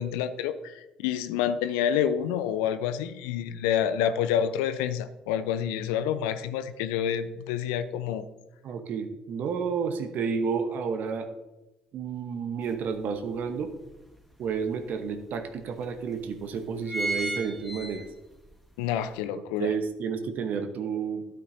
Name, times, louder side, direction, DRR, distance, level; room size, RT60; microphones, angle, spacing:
voice 1, 0.0-8.3 18.8-19.7, left 9 dB, 75° left, 12 dB, 0.5 m, -28 dB
voice 2, 8.6-11.3 11.9-13.7 14.4-18.0 19.3-21.2, right 6 dB, 60° right, 8 dB, 1.0 m, -31 dB
sound 1, 12.7-12.8 13.2-14.4 15.0-15.1 15.4-15.5 16.1-16.4 16.6-18.4 18.9-19.0, right 2 dB, ahead, 1.9 m, -33 dB
12.5 x 8.3 x 2.6 m, 1.0 s
hypercardioid pair, 50°, 3 cm